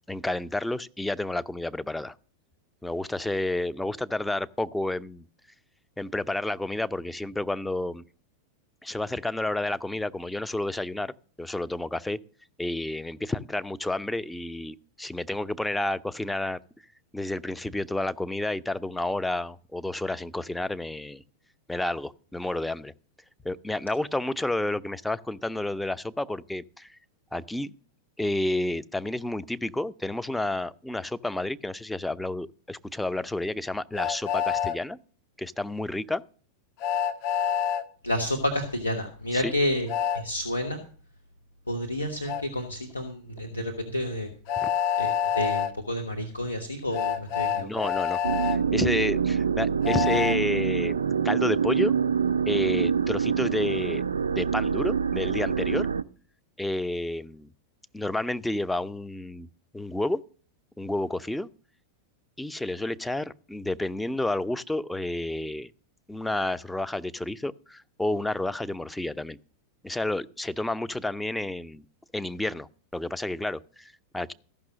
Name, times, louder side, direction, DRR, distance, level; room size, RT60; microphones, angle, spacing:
voice 1, 0.1-2.1 2.8-5.3 6.0-8.0 8.8-11.1 11.4-12.2 12.6-16.6 17.1-21.2 21.7-22.9 23.4-27.0 27.3-27.7 28.2-35.0 35.4-36.2 39.3-39.5 44.6-44.7 47.6-51.0 51.2-51.9 52.5-54.0 54.3-55.9 56.6-57.5 57.9-59.5 59.7-60.2 60.8-61.5 62.4-65.7 66.1-69.4 69.8-71.8 72.1-74.3, left 1 dB, 5° left, 0.5 m, -30 dB
Train, 34.0-34.8 36.8-37.8 39.9-40.2 42.3-42.4 44.5-45.7 46.9-48.6 49.8-50.4, left 9 dB, 45° left, 0.8 m, -27 dB
voice 2, 38.0-39.9 40.1-40.8 41.7-44.3 45.0-47.7, left 1 dB, 80° left, 1.2 m, -30 dB
sound 1, 48.2-56.0, right 6 dB, 70° right, 0.5 m, -26 dB
14.0 x 6.0 x 7.4 m
figure-of-eight pair, 90°, 0 cm